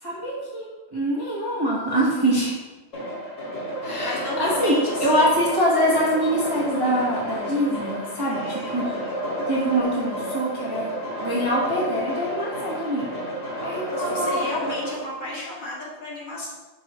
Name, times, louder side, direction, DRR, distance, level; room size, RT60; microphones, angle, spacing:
voice 1, 0.0-2.6 3.8-4.7 5.0-8.9 9.5-10.9 11.2-13.1 13.6-14.7, equal, 15° right, -7 dB, 1.0 m, -24 dB
sound 1, 2.9-14.9, equal, 40° left, 1.9 m, -30 dB
voice 2, 4.0-5.4 8.2-9.2 13.9-16.5, left 2 dB, 65° left, -7 dB, 2.5 m, -34 dB
6.0 x 5.4 x 3.0 m, 1.2 s
omnidirectional pair, 2.1 m